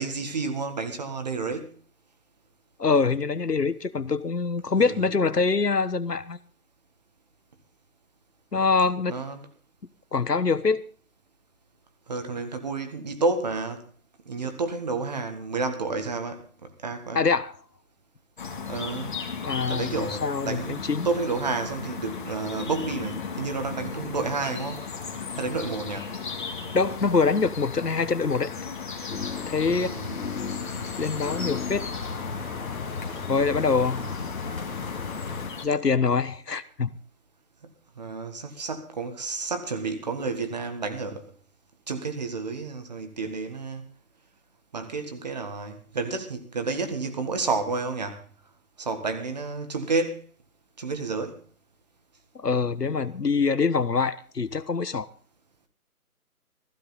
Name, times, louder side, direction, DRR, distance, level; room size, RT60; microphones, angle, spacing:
voice 1, 0.0-1.8 4.7-5.2 9.1-9.5 12.1-13.8 14.2-17.2 18.6-19.2 19.7-24.8 25.3-26.1 29.7-30.2 37.6-37.7 38.0-41.3 41.9-43.9 44.7-48.2 48.8-50.3 50.8-51.4, right 3 dB, 25° right, 1.7 m, -30 dB
voice 2, 2.8-6.4 8.5-9.1 10.1-10.8 17.1-17.5 19.4-21.1 26.7-28.5 29.5-29.9 31.0-31.9 33.3-34.0 35.6-36.9 52.3-55.1, left 4 dB, 90° left, 1.4 m, -24 dB
sound 1, 18.4-35.7, left 5 dB, 30° left, 2.2 m, -36 dB
sound 2, 29.1-35.5, left 5 dB, 60° left, 1.8 m, -35 dB
16.0 x 15.5 x 4.1 m
figure-of-eight pair, 160°, 46 cm